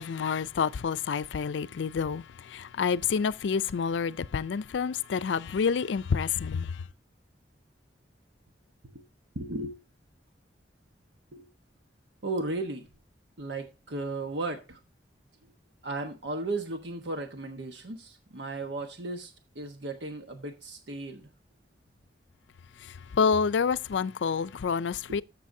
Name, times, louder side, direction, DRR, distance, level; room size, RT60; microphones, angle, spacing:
voice 1, 0.0-6.8 22.8-25.2, left 6 dB, 85° left, 0.4 m, -28 dB
voice 2, 9.3-9.8 11.3-11.5 12.2-12.9 13.4-14.8 15.8-21.3 25.1-25.2, right 2 dB, 80° right, 1.1 m, -35 dB
14.0 x 6.7 x 2.7 m
head